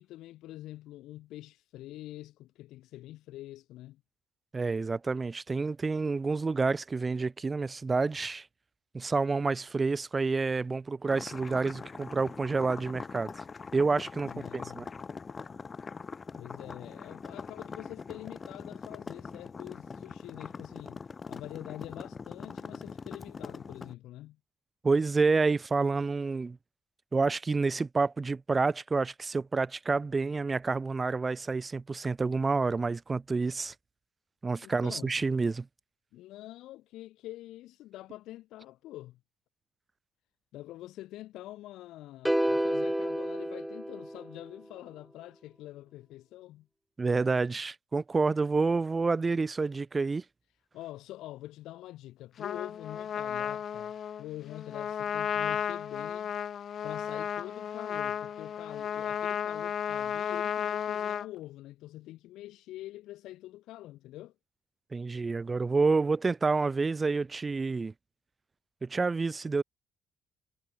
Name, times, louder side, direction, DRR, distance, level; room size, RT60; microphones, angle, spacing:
voice 1, 0.0-4.0 14.2-14.8 16.3-24.4 34.6-35.2 36.1-39.2 40.5-46.7 50.7-56.4 56.8-64.3, left 15 dB, 70° left, 4.5 m, -45 dB
voice 2, 4.5-8.5 8.9-13.3 13.7-14.9 24.8-26.6 27.1-33.7 34.4-35.7 47.0-50.2 64.9-67.9 68.8-69.6, right 4 dB, 30° right, 1.4 m, -28 dB
sound 1, 11.1-23.9, left 5 dB, 35° left, 6.3 m, -43 dB
sound 2, 42.3-44.6, equal, 5° right, 3.3 m, -30 dB
Trumpet, 52.4-61.3, left 8 dB, 55° left, 0.6 m, -33 dB
hypercardioid pair, 50°, 0 cm